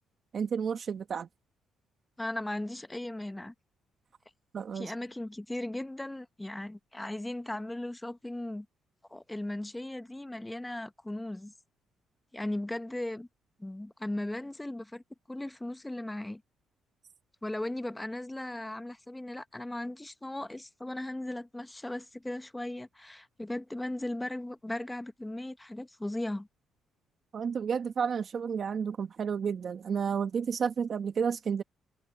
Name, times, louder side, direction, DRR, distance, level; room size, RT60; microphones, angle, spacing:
voice 1, 0.3-1.3 4.5-4.9 27.3-31.6, right 6 dB, 50° right, 1.2 m, -31 dB
voice 2, 2.2-3.5 4.7-8.7 9.1-11.5 12.3-13.3 13.6-15.0 15.3-16.4 17.4-26.5, left 1 dB, 10° left, 1.2 m, -37 dB
cardioid pair, 85°, 0 cm